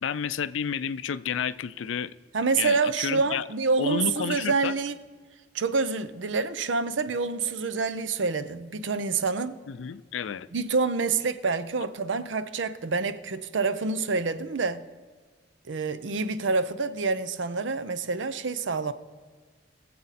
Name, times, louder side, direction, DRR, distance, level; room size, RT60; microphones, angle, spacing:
voice 1, 0.0-2.1 2.5-3.4 3.8-4.7 9.7-10.5, left 7 dB, 85° left, 0.4 m, -31 dB
voice 2, 2.3-5.0 5.5-9.6 10.5-14.8 15.7-18.9, right 4 dB, 75° right, 0.6 m, -27 dB
21.5 x 7.6 x 4.1 m
head